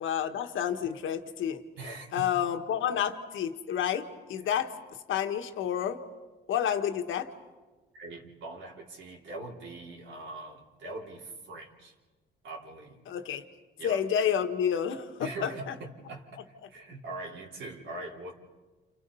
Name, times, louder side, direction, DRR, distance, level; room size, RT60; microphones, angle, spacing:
voice 1, 0.0-1.6 2.1-4.7 5.1-6.0 6.5-7.3 13.1-13.4 13.8-15.7, left 9 dB, 80° left, 6 dB, 1.7 m, -30 dB
voice 2, 1.8-2.3 7.9-11.9 12.4-13.0 13.8-14.0 15.2-18.4, right 2 dB, 75° right, -2 dB, 4.2 m, -42 dB
29.5 x 28.5 x 5.6 m, 1.2 s
cardioid pair, 90°, 20 cm